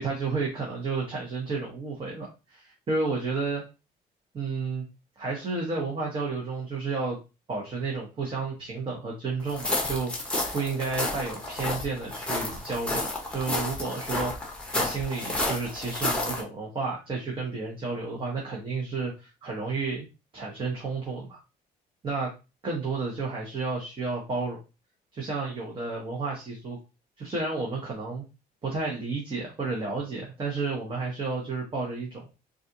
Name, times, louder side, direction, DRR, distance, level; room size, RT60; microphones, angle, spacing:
voice 1, 0.0-3.6 4.3-4.8 5.2-7.2 7.5-20.1 20.3-21.4 22.0-22.3 22.6-24.6 25.1-26.8 27.2-28.2 28.6-32.2, right 4 dB, 30° right, -3 dB, 1.0 m, -31 dB
sound 1, 9.5-16.4, left 2 dB, 5° left, 1.0 m, -31 dB
4.0 x 2.5 x 2.7 m, 0.28 s
cardioid pair, 110°, 17 cm